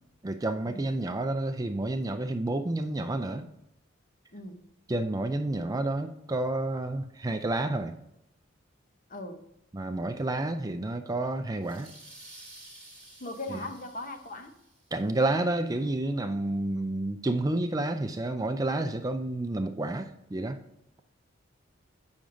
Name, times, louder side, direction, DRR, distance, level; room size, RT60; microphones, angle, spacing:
voice 1, 0.2-3.5 4.9-8.0 9.7-11.9 13.5-13.6 14.9-20.6, right 2 dB, 20° right, 8 dB, 0.4 m, -30 dB
voice 2, 4.3-4.7 9.1-9.4 13.2-14.5, left 2 dB, 40° left, 6 dB, 0.9 m, -39 dB
sound 1, 11.6-15.0, right 1 dB, 5° left, 1.9 m, -51 dB
8.6 x 6.2 x 3.8 m, 0.84 s
head